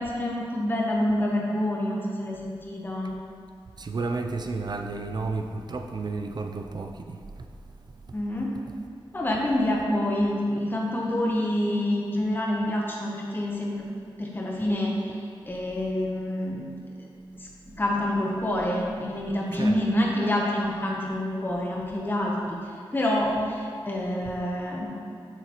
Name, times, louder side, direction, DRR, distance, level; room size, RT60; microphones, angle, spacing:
voice 1, 0.0-3.1 8.1-8.5 9.1-13.9 14.2-16.6 17.3-22.6 22.9-24.9, left 1 dB, 20° left, -3 dB, 0.8 m, -27 dB
voice 2, 3.8-7.5 19.5-19.8 20.2-20.3, right 3 dB, 50° right, 5 dB, 0.4 m, -32 dB
7.2 x 6.6 x 2.9 m, 2.4 s
wide cardioid pair, 105°, 9 cm